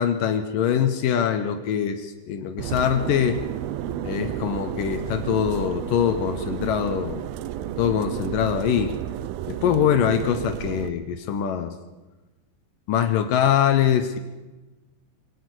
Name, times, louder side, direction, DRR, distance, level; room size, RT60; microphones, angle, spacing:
voice 1, 0.0-3.4 4.0-7.2 7.8-8.9 9.5-11.7 12.9-14.2, left 9 dB, 80° left, 8 dB, 1.9 m, -23 dB
sound 1, 2.6-10.9, right 11 dB, 85° right, 2.1 m, -32 dB
24.0 x 17.5 x 6.2 m, 1.1 s
omnidirectional pair, 5.3 m